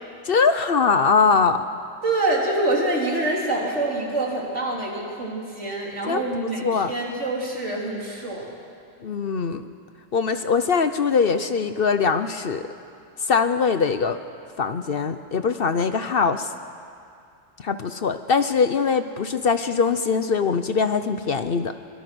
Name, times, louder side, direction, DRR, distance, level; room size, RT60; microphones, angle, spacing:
voice 1, 0.2-1.7 6.0-6.9 9.0-9.7 10.1-12.7 13.3-14.2 14.6-16.5 17.6-21.7, left 5 dB, 55° left, 10 dB, 0.9 m, -22 dB
voice 2, 2.0-8.5, right 2 dB, 70° right, -3 dB, 4.1 m, -26 dB
23.5 x 23.0 x 6.2 m, 2.4 s
omnidirectional pair, 1.3 m